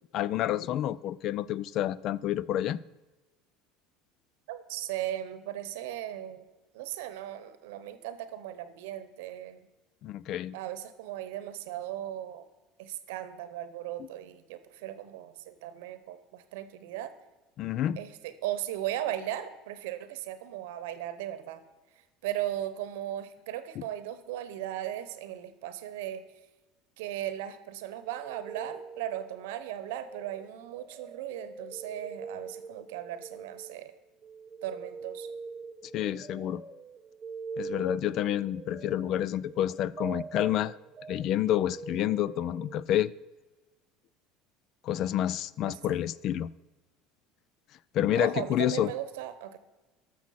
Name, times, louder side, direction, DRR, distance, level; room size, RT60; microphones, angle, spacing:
voice 1, 0.1-2.8 10.0-10.6 14.0-14.1 17.6-18.0 23.8-23.9 35.9-36.6 37.6-40.8 41.1-43.1 44.8-46.5 47.9-48.9, left 12 dB, 60° left, 22 dB, 0.3 m, -29 dB
voice 2, 4.5-6.4 6.7-9.6 10.5-12.5 12.8-17.1 18.0-21.6 22.2-26.2 27.0-33.9 34.6-35.3 45.7-46.0 48.2-49.6, right 12 dB, 80° right, 12 dB, 0.9 m, -37 dB
sound 1, 28.0-34.0 34.2-42.8, right 4 dB, 35° right, 0.8 m, -44 dB
13.5 x 6.2 x 5.7 m, 1.1 s
supercardioid pair, 90°, 0 cm